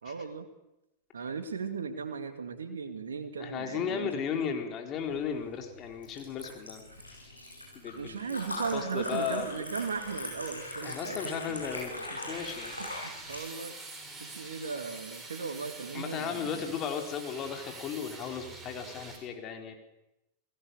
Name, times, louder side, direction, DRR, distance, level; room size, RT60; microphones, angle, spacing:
voice 1, 0.0-0.5 1.1-4.2 7.9-11.6 12.2-12.5 12.8-13.8 14.2-16.6, right 5 dB, 70° right, 8 dB, 2.2 m, -37 dB
voice 2, 3.4-6.8 7.7-8.4 8.7-9.5 10.8-12.7 15.9-19.7, left 7 dB, 30° left, 4 dB, 4.1 m, -35 dB
Liquid, 5.0-13.4, left 1 dB, 90° left, 7.6 m, -41 dB
sound 1, 12.3-19.2, right 3 dB, 10° right, 7.0 m, -46 dB
29.5 x 17.5 x 7.0 m, 0.92 s
figure-of-eight pair, 90°, 0 cm